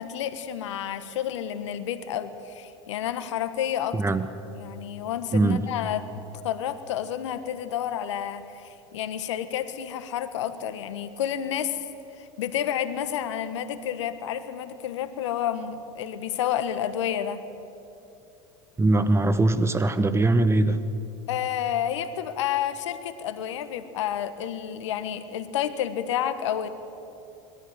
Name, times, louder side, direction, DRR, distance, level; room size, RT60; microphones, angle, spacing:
voice 1, 0.0-4.0 4.6-6.0 6.4-11.8 12.2-17.4 21.3-26.7, left 10 dB, 80° left, 11 dB, 1.3 m, -30 dB
voice 2, 3.9-4.3 5.3-5.6 18.8-20.8, right 2 dB, 15° right, 12 dB, 1.3 m, -21 dB
22.0 x 13.5 x 9.7 m, 2.8 s
hypercardioid pair, 85°, 15 cm